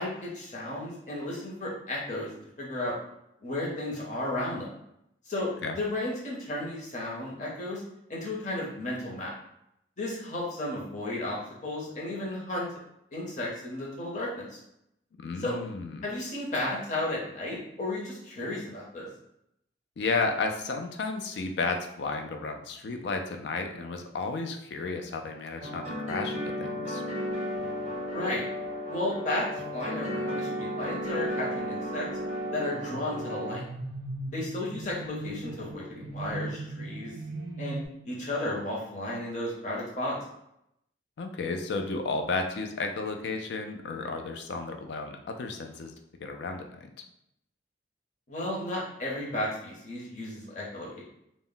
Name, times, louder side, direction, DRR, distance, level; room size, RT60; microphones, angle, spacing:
voice 1, 0.0-2.3 2.6-2.9 3.4-4.7 5.3-7.8 8.1-9.3 10.0-12.7 13.1-14.6 15.4-15.6 16.0-19.1 28.1-28.4 28.8-32.1 32.5-33.6 34.3-37.1 37.6-37.8 38.0-40.2 48.3-51.0, left 1 dB, 40° left, -4 dB, 0.7 m, -33 dB
voice 2, 15.2-16.0 20.0-27.0 41.2-45.9 46.2-46.9, left 3 dB, 65° left, 5 dB, 0.3 m, -33 dB
sound 1, 25.6-33.6, equal, 35° right, 0.6 m, -34 dB
sound 2, 32.6-37.9, right 2 dB, 80° right, 0.4 m, -39 dB
2.1 x 2.0 x 3.7 m, 0.78 s
head